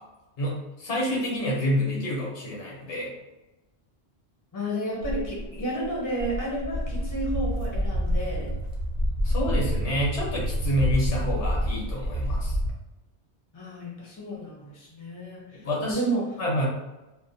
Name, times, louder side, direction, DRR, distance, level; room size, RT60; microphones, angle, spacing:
voice 1, 0.4-3.1 9.2-12.6 15.6-16.1 16.4-16.7, left 1 dB, 85° left, -3 dB, 1.2 m, -28 dB
voice 2, 4.5-8.5 13.5-16.3, right 1 dB, 25° left, -3 dB, 0.5 m, -32 dB
Walk footsteps, 5.0-12.7, equal, 55° right, 0.5 m, -28 dB
2.6 x 2.1 x 2.5 m, 1.0 s
omnidirectional pair, 1.1 m